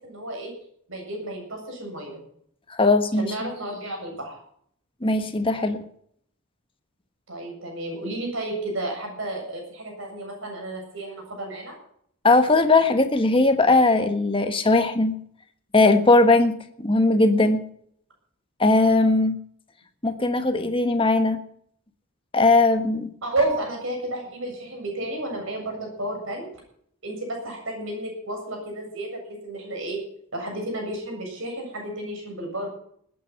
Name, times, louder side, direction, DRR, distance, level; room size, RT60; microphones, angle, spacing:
voice 1, 0.0-0.5 0.9-2.2 3.2-4.4 7.3-11.7 23.2-26.5 27.0-30.0 30.3-32.7, right 1 dB, 60° right, 1 dB, 7.4 m, -31 dB
voice 2, 2.7-3.3 5.0-5.8 12.2-15.2 15.7-17.6 18.6-19.4 20.0-21.4 22.3-23.1, left 2 dB, 25° left, 7 dB, 1.5 m, -19 dB
20.0 x 9.4 x 5.8 m, 0.66 s
head